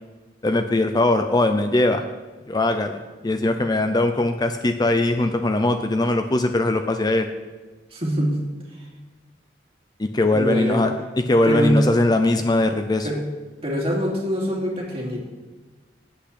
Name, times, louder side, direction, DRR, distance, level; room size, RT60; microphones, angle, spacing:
voice 1, 0.4-2.0 2.5-7.3 10.0-13.1, left 2 dB, 25° left, 7 dB, 0.5 m, -21 dB
voice 2, 7.9-8.4 10.3-10.9 11.4-11.9 13.0-13.2 13.6-15.2, equal, 35° right, -3 dB, 2.8 m, -23 dB
8.2 x 8.2 x 8.4 m, 1.3 s
head